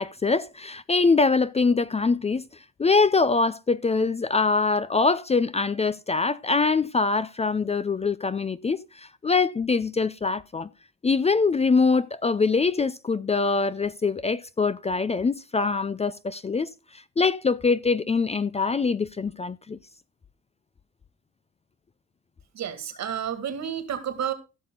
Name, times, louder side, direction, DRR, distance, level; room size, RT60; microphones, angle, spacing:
voice 1, 0.0-2.4 2.8-10.7 11.0-16.7 17.2-19.8, left 4 dB, 20° left, 0.4 m, -23 dB
voice 2, 22.5-24.3, right 9 dB, 65° right, 2.2 m, -30 dB
16.0 x 5.9 x 3.8 m
cardioid pair, 90°, 30 cm